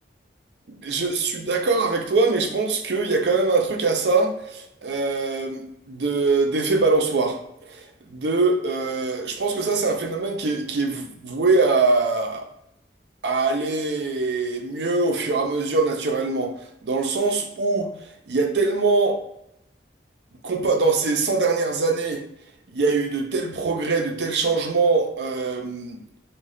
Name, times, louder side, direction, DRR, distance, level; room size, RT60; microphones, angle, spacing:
voice 1, 0.8-7.4 7.7-12.5 13.2-16.5 16.8-17.9 18.3-19.2 20.4-22.2 22.7-26.0, right 3 dB, 75° right, 4 dB, 0.6 m, -23 dB
3.2 x 2.2 x 3.8 m, 0.81 s
head